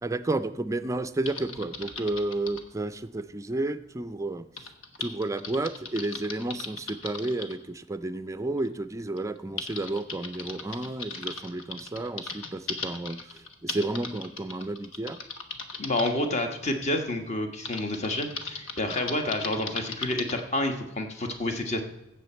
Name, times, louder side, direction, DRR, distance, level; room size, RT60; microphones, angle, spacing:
voice 1, 0.0-4.5 5.0-15.2, right 2 dB, 15° right, 11 dB, 0.4 m, -31 dB
Typing, 1.3-2.7 4.6-7.5 8.6-8.7 9.2-16.1 17.7-20.4, left 4 dB, 85° left, 1.2 m, -38 dB
voice 2, 15.8-21.8, left 1 dB, 35° left, 5 dB, 1.3 m, -29 dB
16.0 x 7.1 x 4.4 m, 0.93 s
head